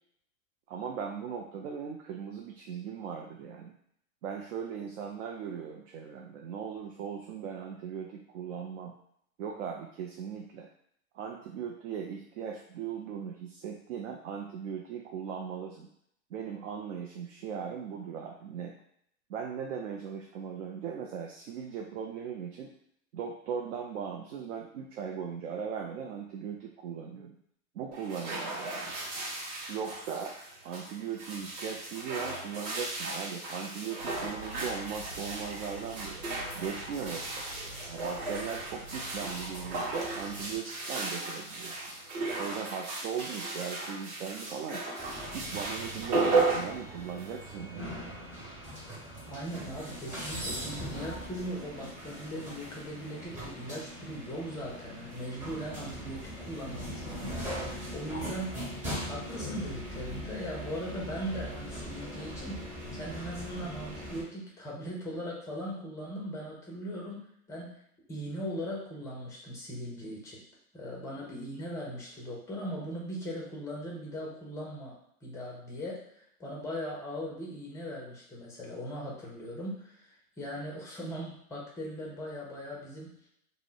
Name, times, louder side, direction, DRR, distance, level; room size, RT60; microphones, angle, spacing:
voice 1, 0.7-3.8 4.2-9.0 9.4-10.7 11.1-15.9 16.3-18.7 19.3-22.7 23.1-27.4 27.7-29.0 29.7-30.4 30.6-36.3 36.5-37.5 37.9-41.8 42.4-44.9 45.3-48.0, right 7 dB, 60° right, 1 dB, 0.5 m, -38 dB
sound 1, 27.9-47.5, right 3 dB, 45° right, 1.0 m, -35 dB
sound 2, 34.0-40.6, right 1 dB, 75° right, 1.1 m, -46 dB
sound 3, 45.0-64.2, equal, 15° right, 1.1 m, -40 dB
voice 2, 49.3-58.6 59.0-67.8 68.1-70.4 70.7-76.1 76.4-83.1, equal, 5° left, -3 dB, 0.4 m, -39 dB
2.1 x 2.0 x 3.7 m, 0.71 s
hypercardioid pair, 120°, 43 cm